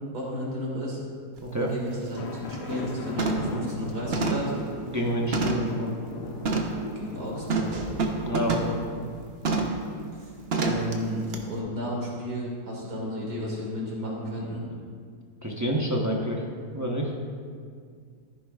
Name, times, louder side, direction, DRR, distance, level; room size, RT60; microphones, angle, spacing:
voice 1, 0.1-1.0 1.6-4.5 6.9-7.8 10.2-14.6, equal, 75° right, -4 dB, 2.6 m, -33 dB
voice 2, 1.4-1.7 4.8-5.9 8.2-8.8 15.4-16.4 16.7-17.1, equal, 15° right, -1 dB, 0.6 m, -28 dB
sound 1, 1.4-1.5 1.9-2.2 2.5-2.9 3.2-3.6 4.1-5.8 6.4-6.8 7.5-8.8 9.4-9.8 10.5-10.9 11.3-11.4, right 3 dB, 45° right, 1.0 m, -28 dB
sound 2, 2.2-9.3, left 2 dB, 80° left, 1.5 m, -39 dB
14.0 x 9.9 x 2.4 m, 2.1 s
omnidirectional pair, 1.7 m